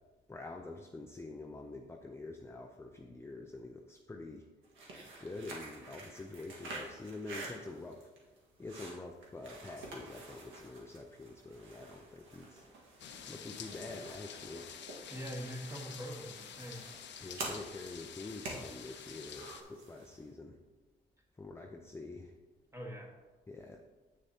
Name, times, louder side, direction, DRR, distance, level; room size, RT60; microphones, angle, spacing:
voice 1, 0.3-4.5 5.2-8.1 8.6-12.7 13.3-14.7 17.2-20.6 21.4-22.3 23.5-23.8, left 2 dB, 15° left, 2 dB, 0.5 m, -46 dB
sound 1, 4.6-20.2, right 2 dB, 80° right, 1.6 m, -49 dB
sound 2, 13.0-19.6, left 8 dB, 65° left, 0.7 m, -49 dB
voice 2, 15.1-16.9 22.7-23.1, equal, 15° right, -1 dB, 1.5 m, -43 dB
7.6 x 6.6 x 2.8 m, 1.3 s
cardioid pair, 90°, 20 cm